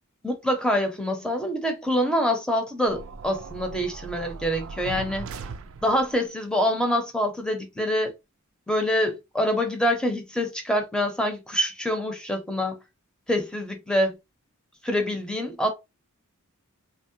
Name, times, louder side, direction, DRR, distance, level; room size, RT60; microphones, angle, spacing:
voice 1, 0.2-5.3 5.8-8.1 8.7-12.8 13.3-14.2 14.8-15.7, equal, 5° left, 0.6 m, -25 dB
sound 1, 2.9-6.2, right 5 dB, 65° right, 0.4 m, -39 dB
3.5 x 2.1 x 2.7 m
head